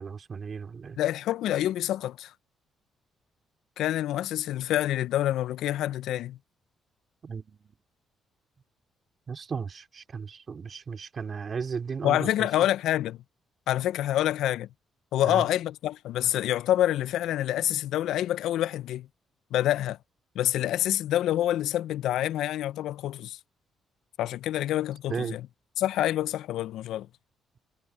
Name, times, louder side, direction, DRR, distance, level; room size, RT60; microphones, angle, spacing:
voice 1, 0.0-1.0 7.2-7.7 9.3-12.3 15.2-15.4 25.1-25.4, right 6 dB, 45° right, 3.2 m, -35 dB
voice 2, 1.0-2.3 3.8-6.4 12.0-13.2 13.7-14.7 15.1-19.1 19.5-20.0 20.3-23.4 24.2-25.5 25.8-27.1, left 13 dB, 85° left, 0.4 m, -27 dB
cardioid pair, 90°, 0 cm